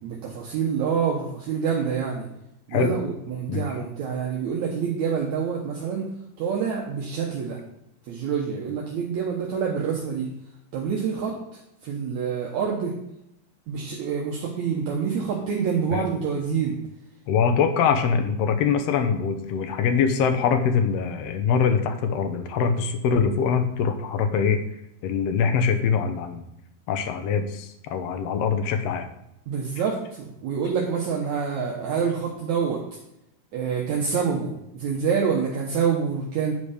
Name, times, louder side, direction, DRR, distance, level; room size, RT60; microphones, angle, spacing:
voice 1, 0.0-2.3 2.7-6.1 6.4-7.6 8.1-10.3 10.7-11.4 11.8-13.0 13.7-16.8 29.5-32.8 33.5-36.5, right 6 dB, 70° right, -1 dB, 2.2 m, -27 dB
voice 2, 17.3-24.6 25.0-26.4 26.9-29.1, left 6 dB, 75° left, 7 dB, 1.5 m, -23 dB
9.5 x 5.0 x 5.0 m, 0.82 s
omnidirectional pair, 3.8 m